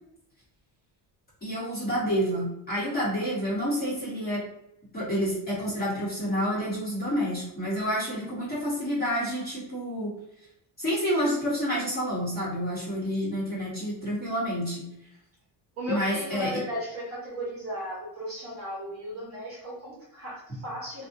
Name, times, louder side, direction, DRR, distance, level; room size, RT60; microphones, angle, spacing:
voice 1, 1.4-4.4 4.9-10.1 10.8-14.9 15.9-16.5, equal, 20° left, -9 dB, 1.5 m, -29 dB
voice 2, 15.8-21.1, equal, 30° right, -6 dB, 1.2 m, -35 dB
2.7 x 2.6 x 2.6 m, 0.79 s
cardioid pair, 150°, 44 cm